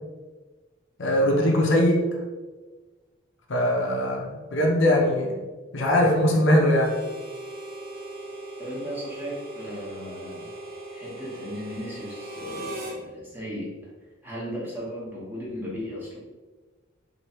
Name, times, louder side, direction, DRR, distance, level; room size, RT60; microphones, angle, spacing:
voice 1, 1.0-2.1 3.5-5.3 5.7-6.9, left 1 dB, 60° left, -1 dB, 0.6 m, -21 dB
Harmonica, 6.7-13.0, right 1 dB, 50° right, 0.7 m, -39 dB
voice 2, 8.6-10.5 10.9-13.7 14.2-16.2, equal, 10° right, -6 dB, 1.0 m, -36 dB
3.0 x 2.7 x 4.2 m, 1.3 s
head